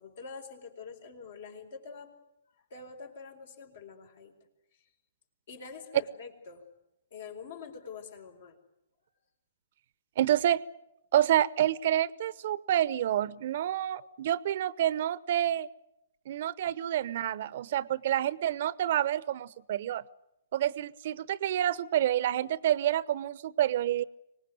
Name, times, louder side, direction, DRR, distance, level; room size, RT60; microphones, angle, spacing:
voice 1, 0.0-2.1 2.7-4.3 5.5-6.6 7.1-8.6, left 5 dB, 65° left, 4 dB, 4.6 m, -45 dB
voice 2, 10.2-10.6 11.1-15.7 16.3-20.0 20.5-24.0, right 11 dB, 55° right, 19 dB, 0.8 m, -28 dB
24.5 x 19.5 x 9.4 m, 0.86 s
hypercardioid pair, 125°, 0 cm